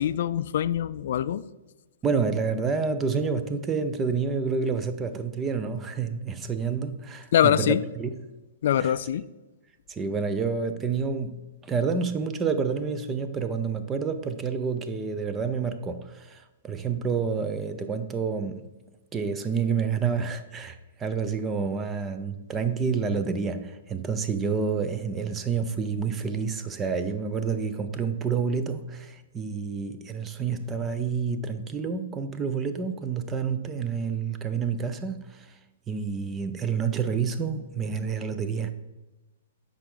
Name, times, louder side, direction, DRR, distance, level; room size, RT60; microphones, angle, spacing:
voice 1, 0.0-1.4 7.3-7.8 8.6-9.2, left 10 dB, 60° left, 0.3 m, -23 dB
voice 2, 2.0-8.1 8.8-8.9 9.9-18.7 19.1-35.5 35.9-38.7, right 5 dB, 15° right, 0.5 m, -29 dB
7.8 x 5.1 x 3.8 m
hypercardioid pair, 150°, 0 cm